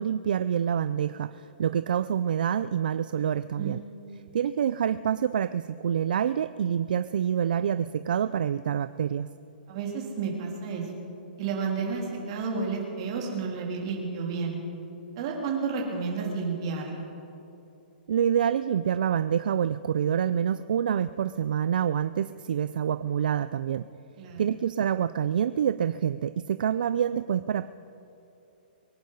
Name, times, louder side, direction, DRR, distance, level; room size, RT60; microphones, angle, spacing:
voice 1, 0.0-3.8 4.3-9.3 18.1-23.9 24.4-27.7, right 9 dB, 60° right, 13 dB, 0.4 m, -27 dB
voice 2, 9.7-10.8 11.4-14.6 15.2-17.0 24.2-24.4, right 5 dB, 35° right, -1 dB, 3.5 m, -31 dB
23.5 x 10.5 x 5.6 m, 2.8 s
hypercardioid pair, 170°, 5 cm